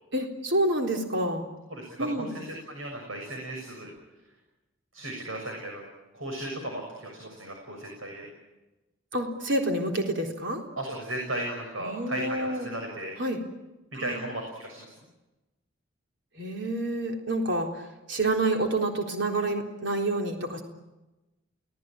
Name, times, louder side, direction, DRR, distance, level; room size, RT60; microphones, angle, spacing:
voice 1, 0.1-1.5 2.0-2.3 9.1-10.6 11.8-12.7 13.2-13.4 13.9-14.2 16.3-20.6, right 1 dB, 60° right, 2 dB, 3.9 m, -28 dB
voice 2, 1.7-3.9 4.9-5.8 6.1-8.3 10.8-13.1 13.9-14.8, right 1 dB, 90° right, 1 dB, 6.7 m, -35 dB
30.0 x 18.5 x 9.1 m, 1.1 s
head